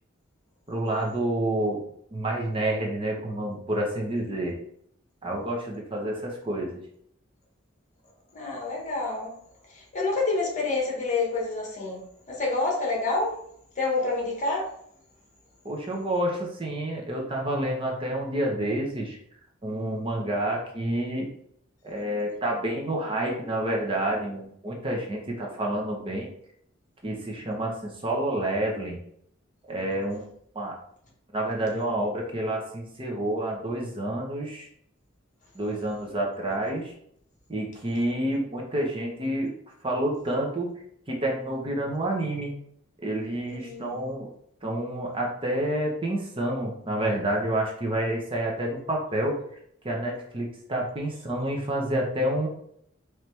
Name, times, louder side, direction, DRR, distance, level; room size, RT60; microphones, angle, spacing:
voice 1, 0.7-1.8 2.1-4.6 5.2-6.8 15.6-19.2 19.6-21.3 21.8-26.3 27.0-29.0 29.7-30.3 30.5-30.8 31.3-34.7 35.5-36.9 37.5-39.5 39.8-40.7 41.1-42.5 43.0-44.3 44.6-49.4 49.8-52.5, right 1 dB, 25° right, 0.8 m, -29 dB
voice 2, 8.3-9.3 9.7-12.0 12.3-13.4 13.8-14.7 43.5-44.0, left 3 dB, 40° left, 1.2 m, -28 dB
4.4 x 3.2 x 3.3 m
head